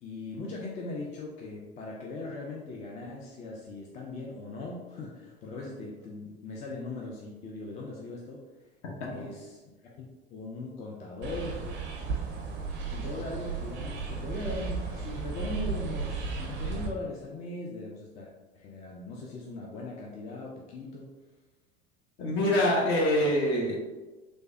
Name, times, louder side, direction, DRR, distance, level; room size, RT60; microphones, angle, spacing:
voice 1, 0.0-8.5 9.1-9.6 9.9-10.1 10.3-11.6 12.9-18.3 18.5-21.1, left 2 dB, 25° left, -2 dB, 0.4 m, -39 dB
voice 2, 8.8-9.3 22.2-23.8, left 1 dB, 40° left, -1 dB, 0.8 m, -26 dB
sound 1, 11.2-16.9, right 5 dB, 35° right, 0.5 m, -34 dB
3.2 x 2.1 x 2.6 m, 1.2 s
figure-of-eight pair, 75°, 32 cm